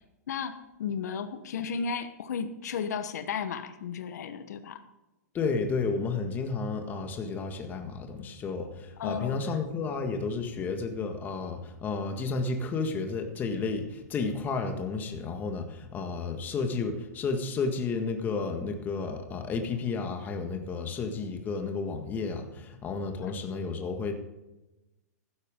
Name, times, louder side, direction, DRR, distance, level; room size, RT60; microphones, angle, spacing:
voice 1, 0.3-4.8 9.0-9.4 23.2-23.3, left 6 dB, 70° left, 9 dB, 1.1 m, -34 dB
voice 2, 5.3-24.1, left 4 dB, 20° left, 5 dB, 1.7 m, -32 dB
15.0 x 12.0 x 3.7 m, 1.0 s
hypercardioid pair, 145°, 9 cm